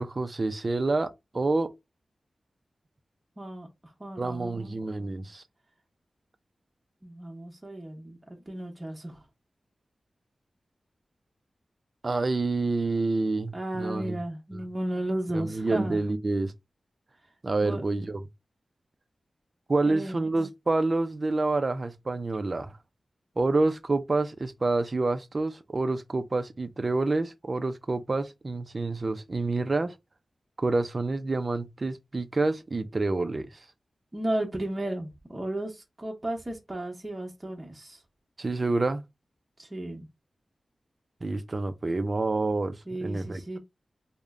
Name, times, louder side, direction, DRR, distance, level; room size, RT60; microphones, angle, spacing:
voice 1, 0.0-1.7 4.2-5.4 12.0-14.2 15.3-16.5 17.4-18.2 19.7-22.7 23.4-29.9 30.6-33.5 38.4-39.0 41.2-43.6, right 3 dB, 45° right, 0.5 m, -28 dB
voice 2, 3.4-4.8 7.0-9.2 13.5-16.0 17.6-17.8 19.9-20.3 34.1-38.0 39.6-40.1 42.9-43.6, right 1 dB, 25° right, 1.1 m, -34 dB
3.5 x 2.2 x 3.6 m
wide cardioid pair, 75°, 0 cm